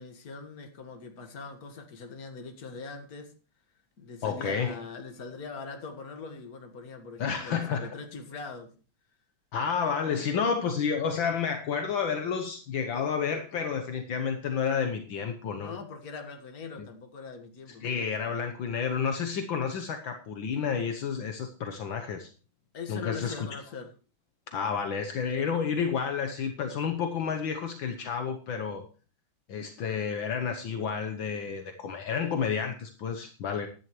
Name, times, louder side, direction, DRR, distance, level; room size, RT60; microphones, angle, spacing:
voice 1, 0.0-3.3 4.0-8.7 15.6-17.9 22.7-23.9, left 5 dB, 45° left, 5 dB, 2.1 m, -41 dB
voice 2, 4.2-4.8 7.2-7.9 9.5-15.7 16.8-16.9 17.8-22.3 22.9-23.5 24.5-28.8 29.5-33.7, left 6 dB, 70° left, 6 dB, 1.7 m, -30 dB
16.0 x 11.0 x 3.2 m, 0.36 s
omnidirectional pair, 2.3 m